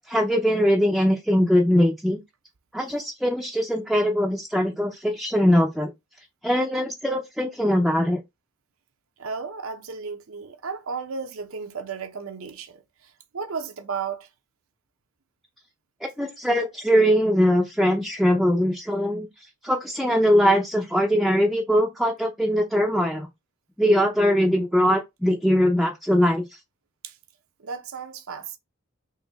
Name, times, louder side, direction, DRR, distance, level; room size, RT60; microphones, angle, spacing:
voice 1, 0.1-2.2 2.7-5.9 6.4-8.2 16.2-19.3 19.6-23.3 23.8-26.4, equal, ahead, 0.5 m, -21 dB
voice 2, 9.2-14.3 27.0-27.1 27.6-28.6, right 5 dB, 80° right, 0.8 m, -34 dB
3.9 x 3.1 x 4.0 m
head